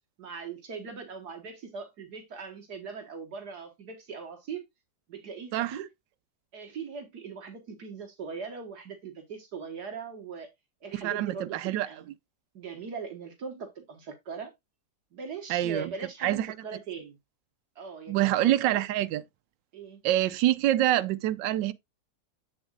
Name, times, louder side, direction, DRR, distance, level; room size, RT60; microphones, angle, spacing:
voice 1, 0.2-4.6 5.1-5.9 6.5-10.5 10.8-12.1 12.5-14.5 15.1-17.2 17.8-18.8 19.7-20.0, right 5 dB, 65° right, 1.8 m, -40 dB
voice 2, 5.5-5.8 11.0-11.9 15.5-15.9 16.2-16.5 18.1-19.2 20.0-21.7, right 14 dB, 85° right, 1.3 m, -26 dB
8.0 x 7.0 x 2.4 m
omnidirectional pair, 1.9 m